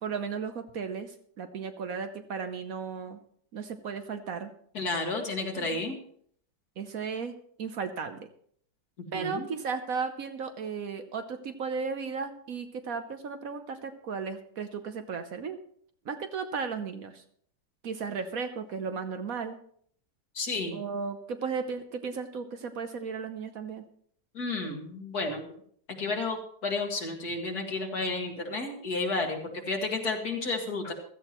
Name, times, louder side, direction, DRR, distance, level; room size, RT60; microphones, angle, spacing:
voice 1, 0.0-3.2 3.5-4.5 5.6-5.8 6.8-8.3 9.1-15.6 16.0-17.2 17.8-19.6 20.7-23.8, right 5 dB, 60° right, 8 dB, 1.2 m, -35 dB
voice 2, 4.7-6.0 9.1-9.5 20.3-20.8 24.3-25.5 26.0-30.9, left 3 dB, 60° left, 2 dB, 2.4 m, -32 dB
15.5 x 13.5 x 3.0 m, 0.63 s
omnidirectional pair, 1.9 m